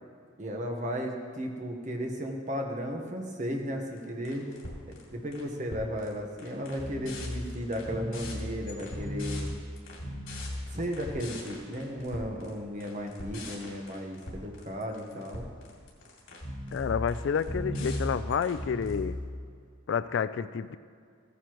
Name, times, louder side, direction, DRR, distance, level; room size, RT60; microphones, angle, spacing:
voice 1, 0.4-4.5 4.9-9.5 10.7-15.5, equal, 40° right, 2 dB, 1.1 m, -35 dB
sound 1, 4.0-4.1 4.3-5.4 5.7-6.1 6.4-19.2, left 1 dB, 85° left, 2.7 m, -37 dB
voice 2, 16.7-19.2 19.9-20.8, left 6 dB, 65° left, 14 dB, 0.3 m, -29 dB
15.5 x 9.4 x 3.1 m, 2.1 s
head